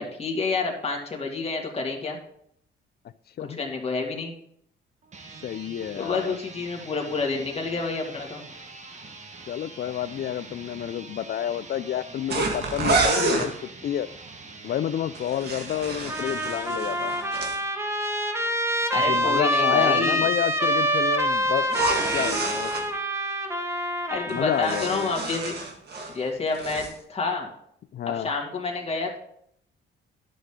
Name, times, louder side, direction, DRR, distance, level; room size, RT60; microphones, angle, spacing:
voice 1, 0.0-2.2 3.4-4.3 6.0-8.4 18.9-20.2 24.1-25.6 26.1-27.5 28.1-29.2, left 3 dB, 30° left, 0 dB, 2.1 m, -29 dB
sound 1, 5.0-17.8, right 3 dB, 35° right, 1.4 m, -44 dB
voice 2, 5.4-6.4 9.5-14.1 14.6-17.1 18.9-21.6 22.1-22.7 24.3-25.1 27.9-28.3, left 10 dB, 50° left, 16 dB, 0.5 m, -29 dB
sound 2, 12.3-13.5 15.1-17.6 21.6-22.8 24.3-26.2 26.5-26.9, right 3 dB, 55° right, 1.8 m, -28 dB
Trumpet, 16.1-25.2, equal, 15° right, 1.1 m, -26 dB
11.0 x 6.3 x 3.8 m, 0.69 s
cardioid pair, 90°, 20 cm